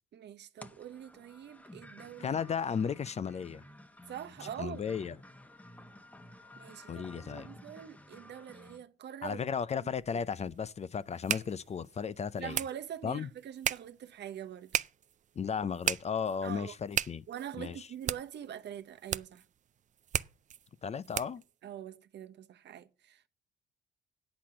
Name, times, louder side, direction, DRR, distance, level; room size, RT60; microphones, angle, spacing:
voice 1, 0.1-2.4 4.1-4.9 6.6-9.4 9.8-10.2 12.4-14.7 16.4-16.8 17.3-19.4 21.6-23.3, right 10 dB, 60° right, 0.9 m, -44 dB
sound 1, 0.6-8.8, left 1 dB, 5° left, 1.1 m, -53 dB
voice 2, 2.2-3.6 4.4-5.2 6.9-7.5 9.2-12.6 13.0-13.3 15.4-17.2 17.6-17.9 20.8-21.4, left 6 dB, 30° left, 0.5 m, -35 dB
sound 2, 9.9-21.5, right 9 dB, 35° right, 0.4 m, -38 dB
8.4 x 6.1 x 7.4 m
supercardioid pair, 80°, 21 cm